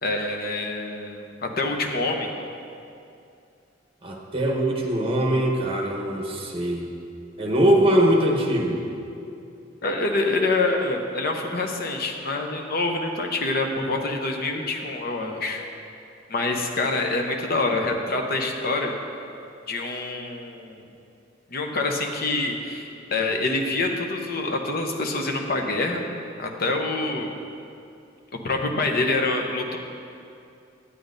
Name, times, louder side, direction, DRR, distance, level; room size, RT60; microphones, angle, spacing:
voice 1, 0.0-2.3 9.8-15.6 16.3-18.9 19.7-20.8 21.5-26.0 26.4-27.3 28.3-29.8, left 2 dB, 50° left, 3 dB, 0.7 m, -26 dB
voice 2, 4.0-6.9 7.4-8.8, right 1 dB, 30° right, 0 dB, 1.0 m, -22 dB
10.0 x 8.4 x 2.6 m, 2.6 s
head